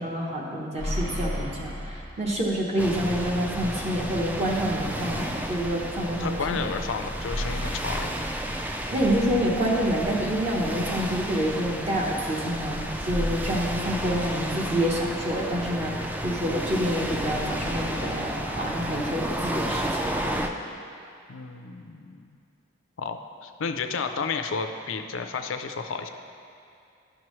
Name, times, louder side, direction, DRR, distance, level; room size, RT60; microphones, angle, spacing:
voice 1, 0.0-6.7 8.9-20.3, equal, 35° right, -3 dB, 0.9 m, -27 dB
sound 1, 0.8-2.8 3.1-3.2 7.2-9.2 13.1-15.0, equal, 80° right, 0.9 m, -34 dB
sound 2, 2.8-20.5, right 1 dB, 10° right, 0.3 m, -32 dB
voice 2, 6.2-8.2 21.3-22.4 23.0-26.1, left 5 dB, 75° left, 7 dB, 0.5 m, -32 dB
11.5 x 6.0 x 3.1 m, 2.5 s
head